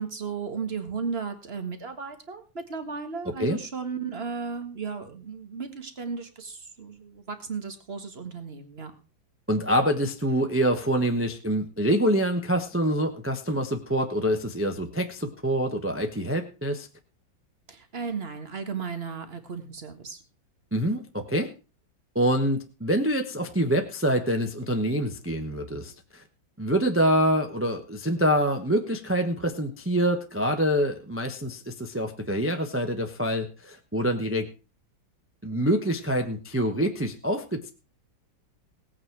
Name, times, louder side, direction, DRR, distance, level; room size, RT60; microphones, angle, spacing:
voice 1, 0.0-8.9 17.7-20.2, right 5 dB, 30° right, 8 dB, 1.7 m, -35 dB
voice 2, 9.5-16.9 20.7-21.5 22.1-26.2 26.6-34.5 35.4-37.7, equal, 10° right, 5 dB, 0.8 m, -26 dB
18.0 x 8.8 x 4.7 m, 0.33 s
omnidirectional pair, 2.2 m